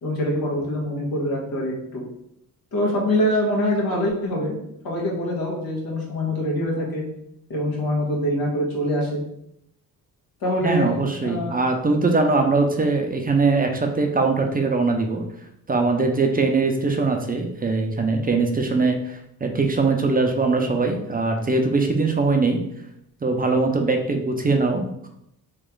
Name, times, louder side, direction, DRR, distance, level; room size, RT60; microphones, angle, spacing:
voice 1, 0.0-2.0 2.7-4.6 4.8-7.0 7.5-9.2 10.4-10.9 11.2-11.6, left 1 dB, 80° left, -3 dB, 1.4 m, -24 dB
voice 2, 10.6-15.2 15.7-22.6 23.2-25.1, right 3 dB, 25° right, 3 dB, 0.5 m, -21 dB
3.1 x 3.0 x 3.7 m, 0.76 s
cardioid pair, 85°, 36 cm